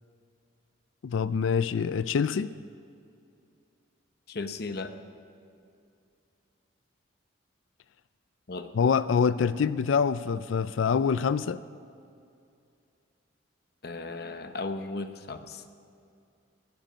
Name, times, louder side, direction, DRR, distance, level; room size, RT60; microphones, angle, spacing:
voice 1, 1.0-2.5 8.7-11.6, left 6 dB, 80° left, 15 dB, 0.4 m, -25 dB
voice 2, 4.3-4.9 8.5-8.7 13.8-15.6, left 3 dB, 55° left, 8 dB, 0.9 m, -36 dB
20.5 x 12.0 x 5.1 m, 2.5 s
head